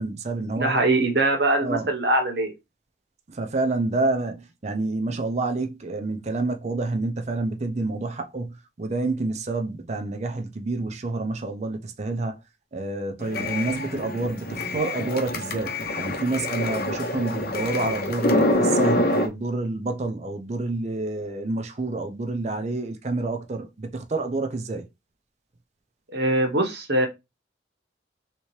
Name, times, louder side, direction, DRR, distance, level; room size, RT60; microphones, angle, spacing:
voice 1, 0.0-0.8 1.6-1.9 3.3-12.4 12.7-24.9, right 2 dB, 40° right, 0.5 m, -28 dB
voice 2, 0.6-2.5 26.1-27.1, right 2 dB, 65° right, 1.0 m, -22 dB
sound 1, 13.2-19.3, left 1 dB, 55° left, 0.7 m, -26 dB
3.4 x 2.9 x 3.1 m
head